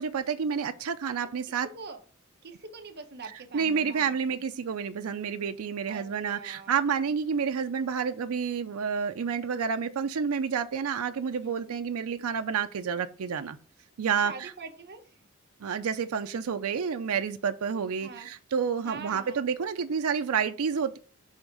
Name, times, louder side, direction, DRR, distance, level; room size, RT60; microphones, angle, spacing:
voice 1, 0.0-1.7 3.5-13.6 14.0-14.5 15.6-21.0, right 6 dB, 90° right, 0.5 m, -29 dB
voice 2, 2.4-4.1 5.9-6.7 11.4-11.7 14.2-15.0 18.0-18.3 18.8-19.4, right 4 dB, 50° right, 1.0 m, -44 dB
6.4 x 3.5 x 5.3 m
head